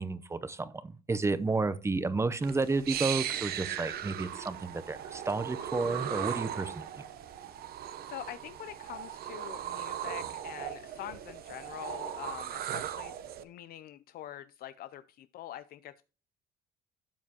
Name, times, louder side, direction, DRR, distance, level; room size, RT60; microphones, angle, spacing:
voice 1, 0.0-7.0, right 3 dB, 15° right, 0.7 m, -31 dB
sound 1, 2.4-13.4, right 10 dB, 65° right, 0.9 m, -38 dB
voice 2, 8.0-13.1 13.4-16.0, left 12 dB, 60° left, 0.5 m, -45 dB
12.5 x 7.2 x 2.9 m
cardioid pair, 110°, 17 cm